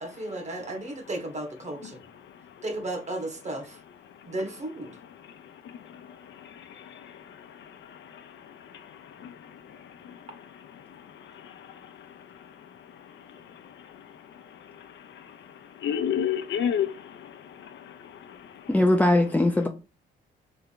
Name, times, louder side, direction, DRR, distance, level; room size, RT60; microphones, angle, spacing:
voice 1, 0.0-2.0 2.6-3.8 4.2-5.0, right 1 dB, 35° right, 1.3 m, -34 dB
voice 2, 15.8-17.3 17.7-17.8 18.3-18.4, left 9 dB, 70° left, 0.6 m, -29 dB
voice 3, 18.7-19.7, left 1 dB, 5° left, 0.5 m, -20 dB
3.4 x 3.4 x 3.8 m
cardioid pair, 90°, 20 cm